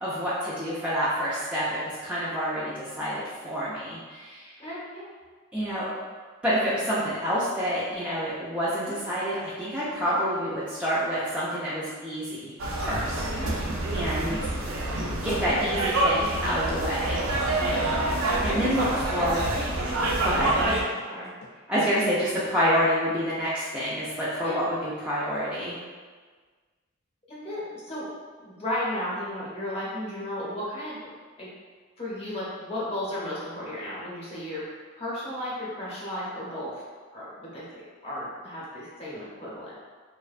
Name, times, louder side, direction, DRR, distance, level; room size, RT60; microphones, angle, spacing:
voice 1, 0.0-4.6 5.5-5.9 6.4-13.6 13.9-14.4 15.2-17.2 18.4-19.4 20.2-20.5 21.7-25.8, equal, 5° right, -10 dB, 0.3 m, -28 dB
voice 2, 4.6-5.0 8.9-9.0 13.4-13.5 18.7-19.4 20.4-20.7 21.1-21.3 24.4-24.6 27.3-28.1 28.4-31.0 31.4-31.5 32.0-34.6 35.0-36.8 37.1-39.7, left 1 dB, 30° left, -8 dB, 0.7 m, -34 dB
sound 1, 12.6-20.8, right 2 dB, 75° right, 0.4 m, -27 dB
sound 2, 12.8-21.5, left 2 dB, 80° left, 0.3 m, -46 dB
2.4 x 2.1 x 2.4 m, 1.5 s
head